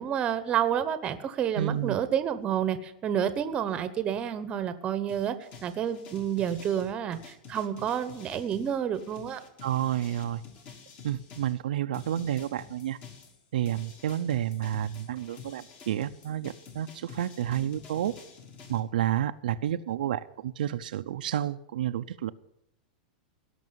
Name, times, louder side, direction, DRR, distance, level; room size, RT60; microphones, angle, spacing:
voice 1, 0.0-5.3 5.6-9.4, right 9 dB, 20° right, 12 dB, 1.0 m, -29 dB
voice 2, 1.5-1.9 9.6-10.4 11.0-13.0 13.5-18.1 18.7-22.3, right 11 dB, 80° right, 9 dB, 0.6 m, -30 dB
sound 1, 5.1-11.6 11.9-18.8, left 6 dB, 30° left, 1.9 m, -49 dB
17.5 x 6.1 x 9.4 m, 0.82 s
supercardioid pair, 155°, 5 cm